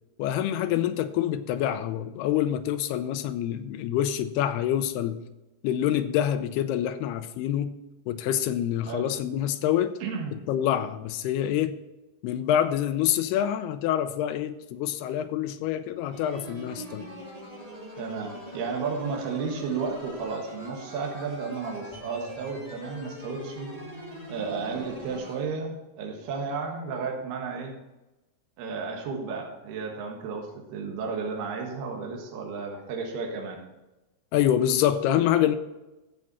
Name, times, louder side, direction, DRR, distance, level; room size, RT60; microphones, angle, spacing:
voice 1, 0.2-5.2 5.6-7.8 8.1-9.9 10.5-11.7 12.2-17.1 34.3-35.6, left 11 dB, 80° left, 10 dB, 2.5 m, -26 dB
voice 2, 10.0-10.4 18.0-23.7 24.3-27.7 28.6-33.6, right 5 dB, 70° right, 1 dB, 3.5 m, -33 dB
sound 1, 16.1-25.4, equal, 10° right, 2.2 m, -42 dB
13.0 x 7.7 x 4.2 m, 1.0 s
omnidirectional pair, 4.8 m